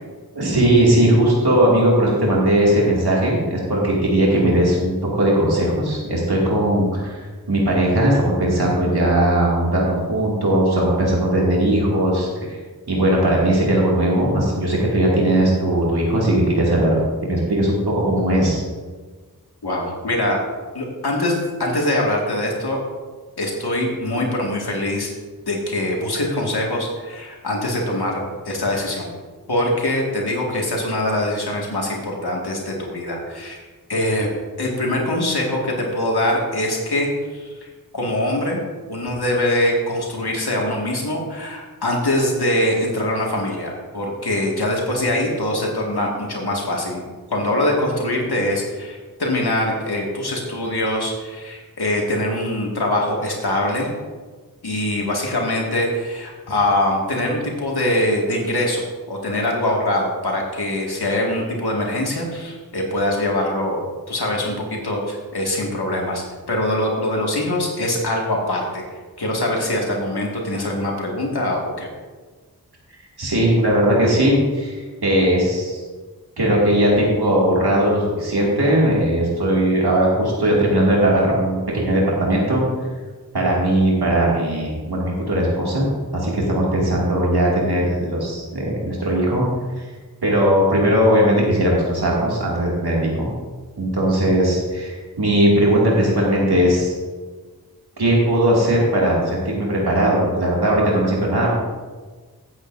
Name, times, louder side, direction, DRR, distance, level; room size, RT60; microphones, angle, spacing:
voice 1, 0.3-7.2 7.5-12.6 12.9-18.6 73.2-74.7 75.0-75.8 76.4-82.6 83.3-85.9 86.1-89.5 89.8-89.9 90.2-93.3 93.8-96.9 98.0-101.5, right 1 dB, 85° right, -4 dB, 2.3 m, -18 dB
voice 2, 19.6-20.4 20.7-22.8 23.4-25.1 25.5-29.1 29.5-34.3 34.6-38.6 38.9-47.0 47.3-53.9 54.6-63.8 64.1-68.8 69.2-71.9, left 1 dB, 85° left, -1 dB, 2.0 m, -23 dB
16.0 x 8.1 x 2.6 m, 1.4 s
wide cardioid pair, 45°, 38 cm